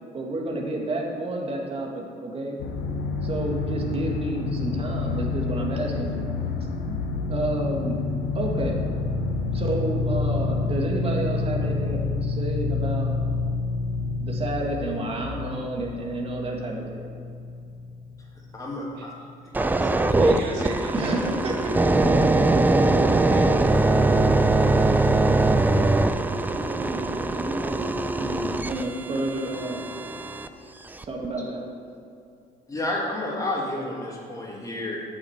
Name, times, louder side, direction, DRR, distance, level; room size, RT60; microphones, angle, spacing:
voice 1, 0.1-2.6 3.2-6.2 6.9-7.0 7.3-8.0 8.3-8.8 9.5-13.1 14.2-17.1 20.9-22.3 22.6-22.7 24.1-24.3 26.4-29.8 31.0-31.6, right 2 dB, 35° right, 0 dB, 1.9 m, -30 dB
sound 1, 2.6-18.3 18.7-18.8, left 3 dB, 80° left, 1.0 m, -28 dB
voice 2, 18.5-19.1 19.5-20.5 32.7-35.0, left 1 dB, 20° left, -3 dB, 2.3 m, -31 dB
sound 2, 19.5-30.5 31.0-31.3, right 2 dB, 10° right, 0.4 m, -22 dB
voice 3, 19.8-21.2 23.3-23.7, right 3 dB, 80° right, 0 dB, 1.7 m, -35 dB
8.1 x 6.1 x 8.1 m, 2.5 s
cardioid pair, 110°, 17 cm